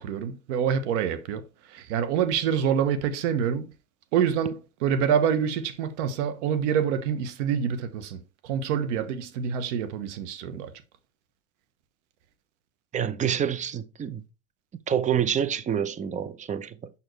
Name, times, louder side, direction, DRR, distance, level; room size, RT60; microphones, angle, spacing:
voice 1, 0.0-1.4 1.7-3.6 4.1-8.2 8.4-10.7, right 8 dB, 85° right, 1.2 m, -26 dB
voice 2, 12.9-14.2 14.9-16.9, right 8 dB, 20° right, 0.6 m, -27 dB
7.0 x 5.5 x 3.1 m
supercardioid pair, 125°, 35 cm